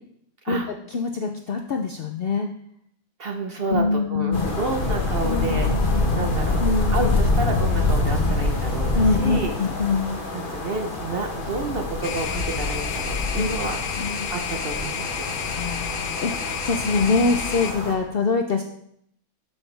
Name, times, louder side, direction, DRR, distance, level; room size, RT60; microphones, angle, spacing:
voice 1, 0.9-2.5 3.7-4.5 5.2-7.1 8.9-10.2 13.3-13.5 14.0-14.2 15.5-18.6, left 4 dB, 60° left, 4 dB, 0.6 m, -24 dB
voice 2, 3.2-5.7 6.1-6.6 6.9-9.5 10.3-13.8 14.3-15.3, right 3 dB, 50° right, 4 dB, 0.8 m, -30 dB
sound 1, 4.3-17.9, left 2 dB, 35° left, 1.3 m, -26 dB
sound 2, 12.0-17.7, left 7 dB, 85° left, 1.3 m, -31 dB
12.0 x 5.7 x 3.3 m, 0.71 s
omnidirectional pair, 1.6 m